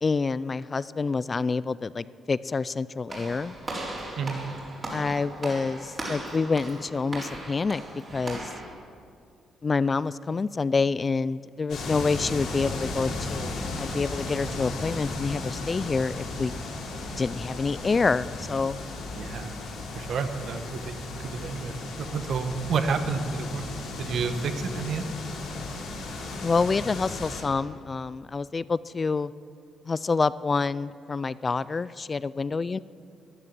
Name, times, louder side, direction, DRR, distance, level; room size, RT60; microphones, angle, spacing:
voice 1, 0.0-3.6 4.9-7.8 8.1-8.5 9.6-16.5 17.2-18.8 26.4-29.3 29.9-32.8, left 4 dB, 30° left, 18 dB, 0.3 m, -27 dB
Walk footsteps / Slam, 3.1-8.6, right 2 dB, 35° right, 4.1 m, -37 dB
sound 1, 11.7-27.4, left 2 dB, 80° left, 3.3 m, -35 dB
voice 2, 19.1-19.5 19.9-23.6 24.0-25.0, right 5 dB, 65° right, 8 dB, 1.2 m, -30 dB
14.0 x 11.0 x 7.5 m, 2.3 s
cardioid pair, 90°, 0 cm